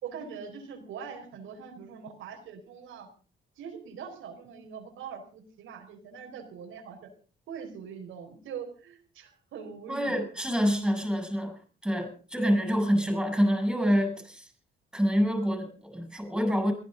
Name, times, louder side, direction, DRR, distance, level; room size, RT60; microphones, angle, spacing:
voice 1, 0.0-3.1 3.6-7.0 7.5-10.2, right 6 dB, 85° right, 2 dB, 4.6 m, -42 dB
voice 2, 9.9-14.5 14.9-16.7, equal, 5° right, 5 dB, 7.9 m, -27 dB
22.0 x 15.5 x 4.0 m, 0.40 s
cardioid pair, 90°, 20 cm